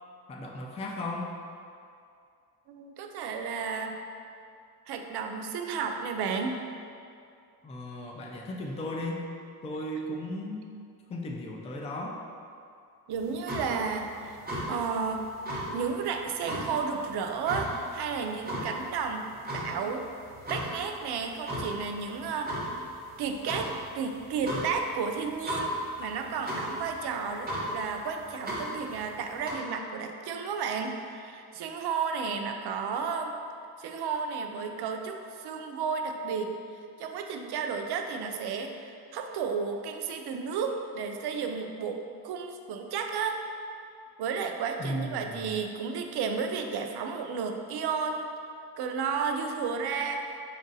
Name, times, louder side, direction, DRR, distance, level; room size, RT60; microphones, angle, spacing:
voice 1, 0.3-1.3 7.6-9.2 9.6-10.7 11.1-12.2 44.8-45.6, left 1 dB, 15° left, 0 dB, 0.3 m, -36 dB
voice 2, 2.7-4.0 4.9-6.6 13.1-14.4 14.7-15.3 15.7-19.2 19.5-20.1 20.5-22.5 23.2-23.7 23.9-33.3 33.8-36.5 37.0-43.4 44.2-48.3 48.8-50.3, right 5 dB, 80° right, 4 dB, 0.5 m, -32 dB
sound 1, 13.1-29.5, equal, 25° right, 1.0 m, -37 dB
5.3 x 2.5 x 4.0 m, 2.4 s
cardioid pair, 125°, 39 cm